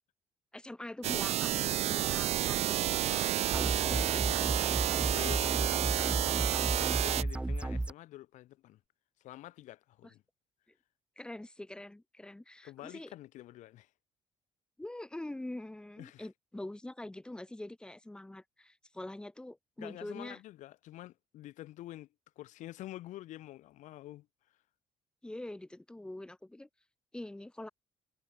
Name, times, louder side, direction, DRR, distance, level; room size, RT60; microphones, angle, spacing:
voice 1, 0.5-3.1 10.0-10.1 11.2-13.1 14.8-20.4 25.2-26.7 27.1-27.7, left 1 dB, 5° left, 7.1 m, -44 dB
sound 1, 1.0-7.2, right 12 dB, 60° right, 0.9 m, -30 dB
voice 2, 3.0-3.4 3.6-6.3 6.6-8.8 9.2-10.2 12.6-13.9 16.0-16.3 19.8-22.1 22.4-24.3, left 15 dB, 85° left, 4.7 m, -47 dB
sound 2, 3.5-7.9, right 2 dB, 10° right, 1.8 m, -33 dB
cardioid pair, 160°, 12 cm